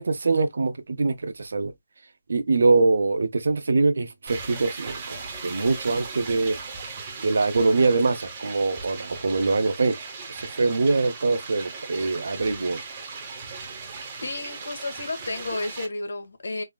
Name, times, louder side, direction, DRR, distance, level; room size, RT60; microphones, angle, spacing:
voice 1, 0.0-1.7 2.3-6.6 7.2-10.0 10.4-12.8, right 3 dB, 50° right, 0.7 m, -23 dB
sound 1, 4.3-15.9, right 4 dB, 15° right, 0.9 m, -38 dB
voice 2, 14.2-16.6, left 2 dB, 65° left, 1.5 m, -32 dB
4.1 x 3.7 x 2.2 m
hypercardioid pair, 175°, 0 cm